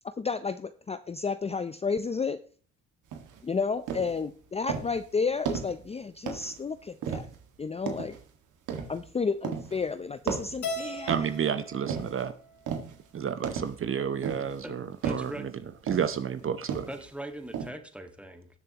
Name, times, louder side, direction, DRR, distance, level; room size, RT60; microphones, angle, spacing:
voice 1, 0.2-2.4 3.4-7.3 7.6-8.2 8.9-11.3, left 5 dB, 20° left, 11 dB, 0.5 m, -31 dB
sound 1, 3.1-3.4 3.9-4.2 4.7-5.0 5.5-5.8 6.3-6.6 7.0-7.4 7.9-8.2 8.7-9.0 9.4-9.8 10.3-11.4 11.9-12.2 12.7-13.0 13.4-13.8 14.2-14.6 15.0-15.4 15.9-16.2 16.7-17.1 17.5-17.7, right 7 dB, 85° right, 1.8 m, -34 dB
Keyboard (musical), 10.6-13.0, left 1 dB, 70° left, 2.3 m, -39 dB
voice 2, 11.1-12.3 13.1-15.5 15.9-16.9, right 7 dB, 45° right, 12 dB, 0.8 m, -30 dB
voice 3, 14.6-15.5 16.9-18.5, right 1 dB, 5° right, 6 dB, 1.6 m, -41 dB
19.5 x 6.8 x 2.9 m, 0.42 s
cardioid pair, 90°, 30 cm